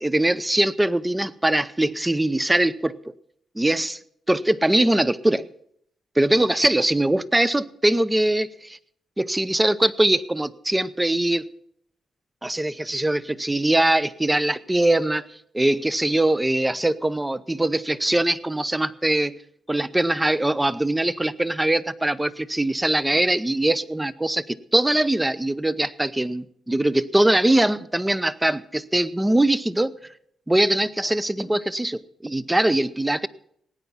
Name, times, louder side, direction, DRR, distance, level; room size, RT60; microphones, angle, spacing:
voice 1, 0.0-3.0 3.6-4.0 4.3-5.5 6.2-8.8 9.2-11.5 12.4-15.3 15.5-19.4 19.7-29.9 30.5-33.3, right 1 dB, 10° right, 16 dB, 0.6 m, -22 dB
18.0 x 9.4 x 5.6 m, 0.70 s
cardioid pair, 80°, 0 cm